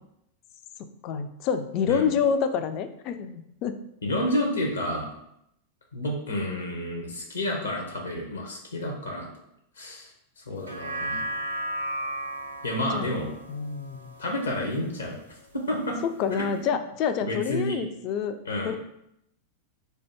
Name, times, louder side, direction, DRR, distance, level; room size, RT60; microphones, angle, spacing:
voice 1, 1.0-3.8 12.9-14.1 16.0-18.4 18.6-18.8, left 7 dB, 40° left, 9 dB, 0.3 m, -28 dB
voice 2, 4.0-5.1 5.9-9.3 9.8-10.1 10.4-11.2 12.6-13.3 14.2-15.2 15.5-16.0 16.4-16.7 17.2-17.8 18.5-18.8, left 1 dB, 75° left, 1 dB, 0.8 m, -30 dB
sound 1, 10.6-15.1 15.5-15.6, right 1 dB, 75° right, 0.5 m, -35 dB
3.3 x 2.5 x 4.5 m, 0.78 s
figure-of-eight pair, 90°, 0 cm